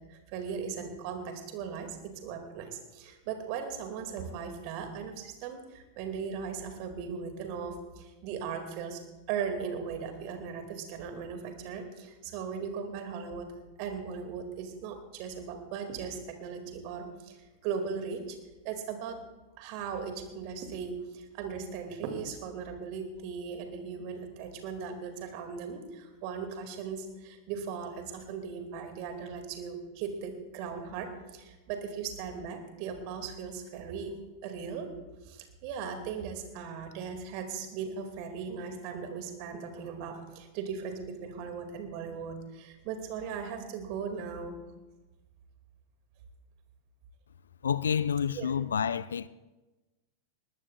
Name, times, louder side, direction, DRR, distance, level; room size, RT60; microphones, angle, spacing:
voice 1, 0.1-9.0 9.3-13.5 13.8-18.4 18.6-19.2 19.6-34.2 34.4-34.9 35.2-44.6 48.4-48.5, right 6 dB, 45° right, 2.2 m, -38 dB
voice 2, 47.6-49.3, left 7 dB, 70° left, 0.4 m, -29 dB
20.0 x 19.5 x 2.4 m
figure-of-eight pair, 90°, 0 cm